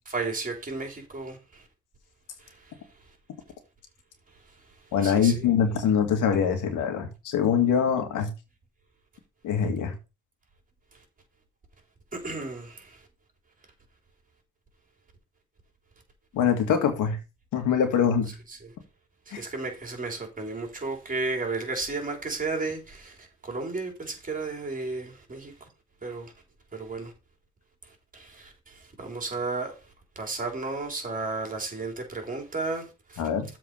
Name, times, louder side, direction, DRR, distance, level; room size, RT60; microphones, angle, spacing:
voice 1, 0.1-1.6 2.4-2.5 5.0-5.5 12.1-13.0 19.3-25.5 26.0-26.3 26.7-27.1 28.1-29.8 30.2-33.2, right 3 dB, 25° right, 3.7 m, -33 dB
voice 2, 4.9-8.3 9.4-9.9 16.3-17.2 17.5-18.3 19.3-19.4 33.2-33.5, left 7 dB, 85° left, 2.2 m, -24 dB
7.6 x 4.6 x 6.6 m
cardioid pair, 90°, 30 cm